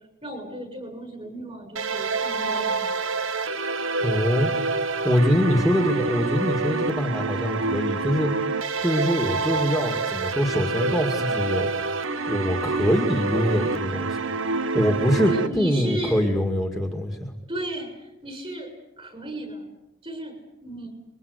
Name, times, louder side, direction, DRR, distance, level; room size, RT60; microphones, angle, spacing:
voice 1, 0.2-3.2 15.3-16.3 17.5-18.7 19.0-19.7 20.0-20.9, right 1 dB, 30° right, 5 dB, 6.9 m, -34 dB
sound 1, 1.8-15.5, right 4 dB, 70° right, 1.1 m, -27 dB
voice 2, 4.0-4.5 5.0-8.4 8.8-11.7 12.3-14.2 14.7-17.3, equal, ahead, 3 dB, 2.2 m, -24 dB
29.0 x 23.0 x 8.2 m, 0.93 s
head